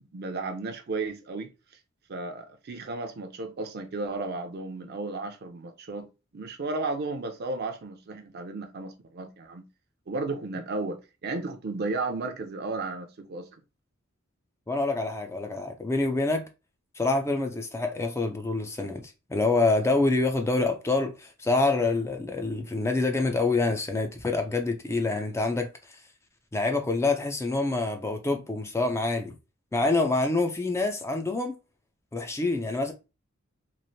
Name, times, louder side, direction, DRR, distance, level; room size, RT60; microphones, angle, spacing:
voice 1, 0.0-1.5 2.1-6.1 6.3-9.7 10.1-13.5, right 3 dB, 50° right, 0.5 m, -34 dB
voice 2, 14.7-16.5 17.0-25.7 26.5-29.3 29.7-31.6 32.1-32.9, left 3 dB, 15° left, 0.4 m, -26 dB
3.1 x 2.5 x 2.7 m
head